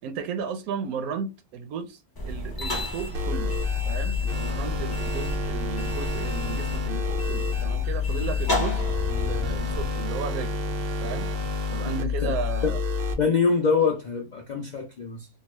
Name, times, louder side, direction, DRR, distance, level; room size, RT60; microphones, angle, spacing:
voice 1, 0.0-3.6 3.8-8.8 9.1-10.6 11.0-11.3 11.7-12.8, right 6 dB, 85° right, 1.0 m, -34 dB
sound 1, 2.2-9.9, left 1 dB, 25° left, 0.5 m, -33 dB
sound 2, 3.1-13.1, left 4 dB, 60° right, 0.6 m, -28 dB
voice 2, 11.8-12.4 12.6-12.7 13.2-15.3, left 5 dB, 90° left, 0.4 m, -25 dB
2.8 x 2.2 x 2.9 m
omnidirectional pair, 1.5 m